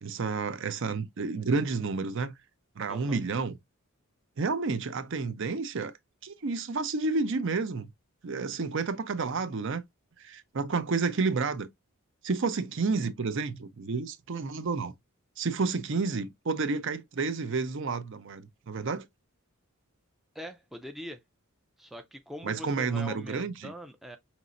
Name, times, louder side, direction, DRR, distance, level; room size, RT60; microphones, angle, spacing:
voice 1, 0.0-2.3 2.8-3.6 4.4-5.9 6.2-7.9 8.2-9.8 10.2-11.7 12.2-14.9 15.4-19.1 22.4-23.7, right 4 dB, 55° right, 0.6 m, -30 dB
voice 2, 2.9-3.2 20.3-21.2 21.8-24.2, equal, ahead, 0.4 m, -42 dB
5.3 x 2.9 x 2.5 m
head